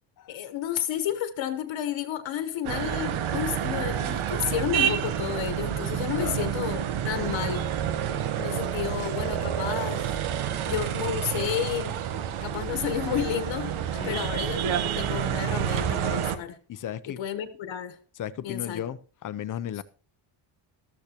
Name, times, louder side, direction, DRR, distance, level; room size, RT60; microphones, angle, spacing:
voice 1, 0.3-7.7 8.4-10.1 10.7-12.0 12.4-13.7 14.0-16.6 17.2-18.0 18.4-18.8, left 10 dB, 70° left, 1.3 m, -31 dB
sound 1, 2.6-16.3, right 9 dB, 90° right, 1.2 m, -29 dB
voice 2, 6.1-6.5 13.9-14.3 16.7-17.2 18.2-19.8, left 10 dB, 40° left, 0.6 m, -35 dB
13.5 x 13.5 x 2.9 m
cardioid pair, 165°, 47 cm